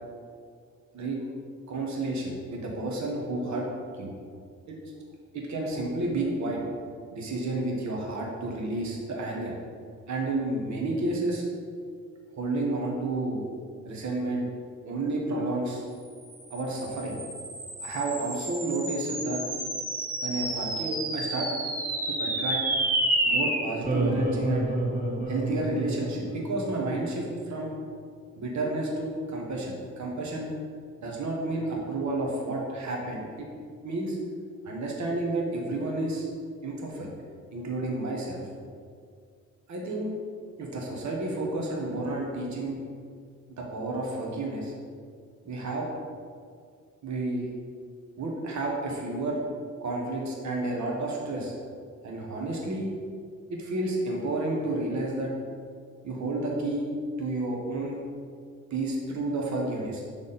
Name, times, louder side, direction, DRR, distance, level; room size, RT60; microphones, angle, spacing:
voice 1, 1.7-3.7 3.9-4.1 4.7-4.8 5.3-6.6 7.1-9.5 10.1-11.4 12.3-13.4 13.8-14.5 14.8-15.8 16.5-17.2 17.8-19.4 20.2-21.5 22.1-22.6 23.2-24.7 25.3-27.7 28.4-30.5 31.0-33.5 33.8-34.2 34.6-36.3 36.6-37.1 37.5-38.4 39.7-40.1 40.6-42.8 43.6-44.7 45.4-45.9 47.0-47.5 48.2-49.4 49.8-51.5 52.0-52.9 53.5-55.3 56.0-56.9 57.2-58.0 58.7-60.0, right 2 dB, 60° right, -1 dB, 1.3 m, -31 dB
sound 1, 16.4-27.0, right 1 dB, 25° right, 1.2 m, -30 dB
7.0 x 3.5 x 4.2 m, 2.1 s
cardioid pair, 70°, 32 cm